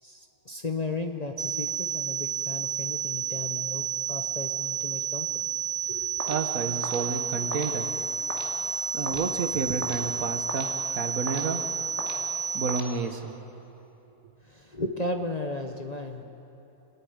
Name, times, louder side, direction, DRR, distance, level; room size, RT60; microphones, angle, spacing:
voice 1, 0.0-5.4 5.8-6.4 14.4-16.2, left 2 dB, 35° left, 4 dB, 0.8 m, -35 dB
sound 1, 1.4-12.8, right 7 dB, 40° right, 1.2 m, -31 dB
sound 2, 6.2-13.4, equal, 10° right, 2.3 m, -41 dB
voice 2, 6.3-7.9 8.9-11.6 12.5-13.3, right 5 dB, 70° right, 7 dB, 1.5 m, -30 dB
27.5 x 9.8 x 9.6 m, 3.0 s
omnidirectional pair, 1.6 m